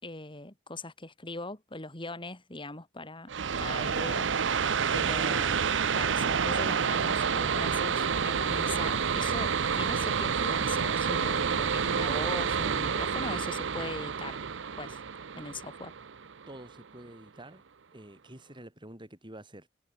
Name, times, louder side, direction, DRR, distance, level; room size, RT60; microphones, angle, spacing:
voice 1, 0.0-3.3 3.6-5.6 5.9-14.4 14.8-15.0 15.3-15.9, left 2 dB, 25° left, 3.6 m, -40 dB
sound 1, 3.3-16.7, right 6 dB, 75° right, 0.7 m, -29 dB
voice 2, 16.5-17.6 17.9-19.7, right 1 dB, 25° right, 7.8 m, -48 dB
head